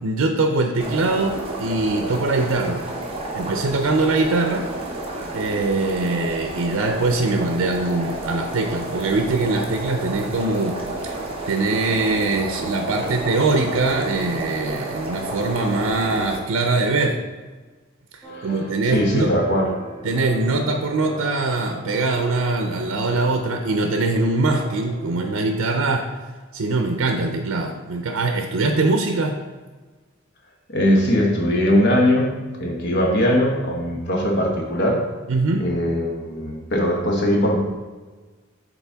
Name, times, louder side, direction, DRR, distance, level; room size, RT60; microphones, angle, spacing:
voice 1, 0.0-2.8 3.3-4.7 5.3-10.7 11.0-11.2 11.5-17.2 18.4-19.3 20.0-26.1 26.5-29.4 35.3-35.7, right 3 dB, 85° right, 4 dB, 0.5 m, -22 dB
sound 1, 0.8-16.4, right 1 dB, 25° right, 0.9 m, -31 dB
sound 2, 18.2-25.5, right 2 dB, 15° left, 1.3 m, -39 dB
voice 2, 18.8-19.7 30.7-35.0 35.6-37.6, equal, 55° left, 0 dB, 1.1 m, -20 dB
7.1 x 4.2 x 3.4 m, 1.3 s
head